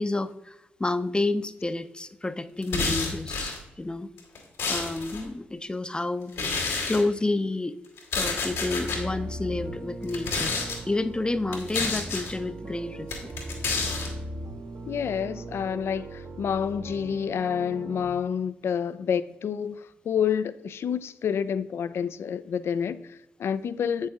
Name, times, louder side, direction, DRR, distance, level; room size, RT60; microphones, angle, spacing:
voice 1, 0.0-4.1 4.7-6.3 6.8-7.8 8.1-10.5 10.9-13.3, left 2 dB, 20° left, 0.6 m, -29 dB
sound 1, 2.6-3.6 4.2-5.2 6.3-7.0 8.0-9.0 10.0-10.8 11.5-12.3 13.1-14.1, left 4 dB, 85° left, 2.1 m, -29 dB
sound 2, 8.5-18.1, right 1 dB, 60° right, 1.0 m, -39 dB
voice 2, 14.8-24.1, left 7 dB, 65° left, 0.4 m, -29 dB
8.5 x 6.5 x 3.6 m
hypercardioid pair, 40°, 5 cm